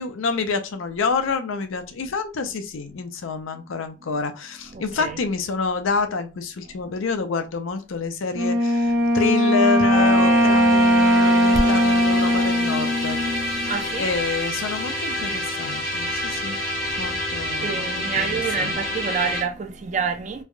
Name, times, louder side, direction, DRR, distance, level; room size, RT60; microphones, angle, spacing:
voice 1, 0.0-13.2 13.5-13.7 14.0-16.6 17.0-18.8, left 4 dB, 75° left, 0.5 m, -28 dB
voice 2, 4.6-5.3 6.6-6.7 8.8-9.3 11.5-11.9 13.3-14.2 15.7-15.8 16.3-17.2 17.6-20.4, right 5 dB, 35° right, 0.4 m, -30 dB
Wind instrument woodwind instrument, 8.3-13.8, equal, 70° right, 1.1 m, -19 dB
sound 1, 9.9-19.4, equal, 50° left, 0.8 m, -27 dB
3.3 x 2.2 x 2.4 m
head